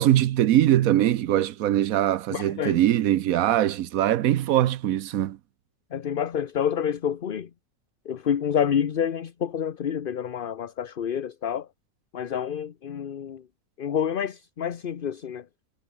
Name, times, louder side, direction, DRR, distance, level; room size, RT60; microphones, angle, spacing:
voice 1, 0.0-5.4, right 12 dB, 80° right, 1.1 m, -22 dB
voice 2, 2.3-2.8 5.9-7.5 8.1-11.7 12.1-13.4 13.8-15.4, left 8 dB, 45° left, 0.9 m, -28 dB
omnidirectional pair, 1.5 m